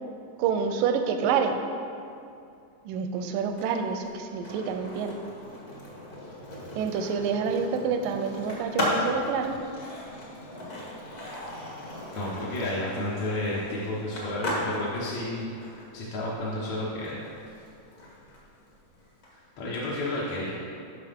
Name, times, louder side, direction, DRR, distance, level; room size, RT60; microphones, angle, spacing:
voice 1, 0.4-1.6 2.9-5.1 6.8-9.6, right 6 dB, 85° right, 6 dB, 2.3 m, -27 dB
Skateboard, 3.4-19.3, left 1 dB, 45° left, 1.1 m, -37 dB
voice 2, 12.1-15.5 15.9-17.2 19.3-20.6, left 1 dB, 65° left, -8 dB, 2.1 m, -31 dB
11.5 x 6.2 x 3.6 m, 2.5 s
omnidirectional pair, 3.8 m